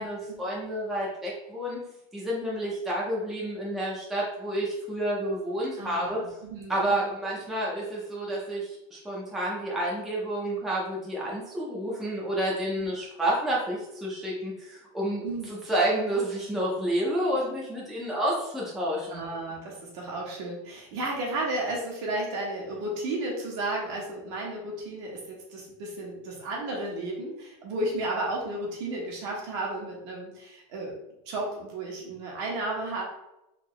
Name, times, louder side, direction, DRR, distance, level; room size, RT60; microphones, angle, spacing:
voice 1, 0.0-1.8 2.1-6.2 6.7-19.2, right 1 dB, ahead, -5 dB, 0.5 m, -30 dB
voice 2, 5.8-7.1 12.8-12.9 15.2-15.5 19.1-30.9 31.3-33.0, right 2 dB, 60° right, -2 dB, 1.3 m, -33 dB
3.6 x 2.7 x 3.2 m, 0.90 s
supercardioid pair, 170°, 16 cm